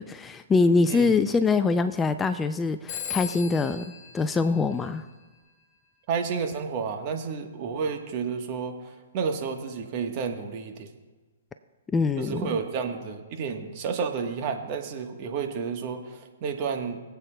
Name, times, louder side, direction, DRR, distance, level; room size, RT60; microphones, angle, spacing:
voice 1, 0.0-5.1 11.9-12.6, left 4 dB, 15° left, 10 dB, 0.3 m, -24 dB
voice 2, 0.9-1.3 6.1-10.9 12.2-17.0, right 6 dB, 40° right, 4 dB, 1.2 m, -31 dB
Telephone, 2.9-5.4, left 9 dB, 30° left, 2.8 m, -38 dB
24.0 x 8.1 x 2.3 m, 1.3 s
hypercardioid pair, 130°, 0 cm